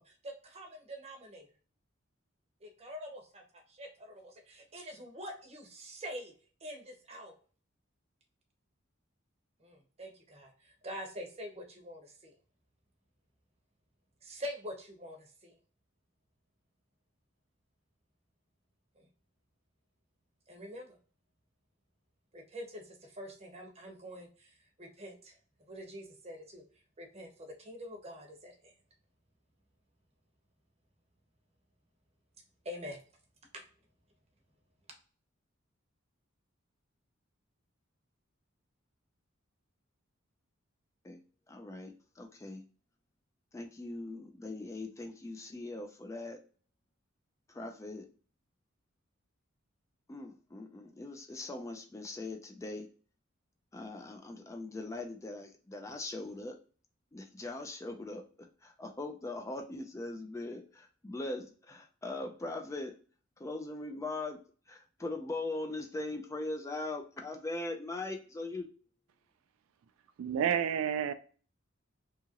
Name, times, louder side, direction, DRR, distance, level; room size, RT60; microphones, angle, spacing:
voice 1, 0.0-1.5 2.6-6.3 6.6-7.3 9.6-12.4 14.2-15.6 19.0-19.1 20.5-21.0 22.3-25.3 25.6-26.6 27.0-28.7 32.6-33.0 33.5-33.6, equal, 30° right, 2 dB, 0.7 m, -45 dB
voice 2, 41.5-42.6 43.5-46.4 47.5-48.1 50.1-52.9 53.7-56.6 57.1-63.0 63.4-64.4 64.7-68.7, left 2 dB, 15° left, 5 dB, 0.3 m, -40 dB
voice 3, 70.2-71.1, right 8 dB, 85° right, 10 dB, 0.3 m, -30 dB
2.8 x 2.4 x 2.8 m, 0.41 s
head